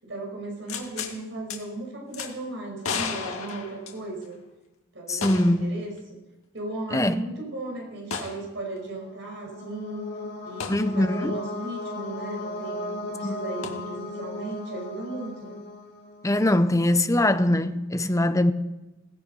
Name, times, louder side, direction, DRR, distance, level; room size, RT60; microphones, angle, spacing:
voice 1, 0.0-4.4 4.9-6.2 6.5-10.1 10.4-15.6, right 2 dB, 55° right, 5.4 m, -36 dB
sound 1, 0.7-1.1 1.5-1.6 2.1-2.3 2.8-4.3 5.2-5.7 6.0-6.1 8.1-8.4 10.6-10.8 13.6-13.7, left 5 dB, 85° left, 2.3 m, -33 dB
voice 2, 5.1-5.6 6.9-7.1 10.7-11.3 13.2-13.4 16.2-18.5, left 1 dB, 15° left, 0.7 m, -22 dB
sound 2, 8.8-16.6, left 1 dB, 55° left, 6.2 m, -37 dB
17.0 x 15.5 x 5.5 m
head